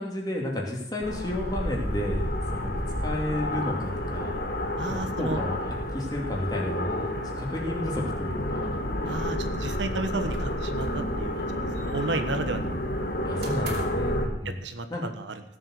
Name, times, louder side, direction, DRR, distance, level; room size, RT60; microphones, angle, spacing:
voice 1, 0.0-2.7 3.0-4.3 4.8-8.7 9.8-9.9 13.2-14.6 14.9-15.0, left 1 dB, 20° left, -1 dB, 2.6 m, -32 dB
sound 1, 1.0-14.3, left 1 dB, 55° left, 1.9 m, -30 dB
voice 2, 4.8-5.4 9.0-11.4 11.8-12.8 13.3-13.6 14.4-15.3, right 2 dB, 80° right, 8 dB, 1.3 m, -33 dB
sound 2, 10.3-11.1 11.3-12.3 13.4-14.2, right 2 dB, 60° right, 2.7 m, -42 dB
16.5 x 7.7 x 6.5 m, 0.81 s
head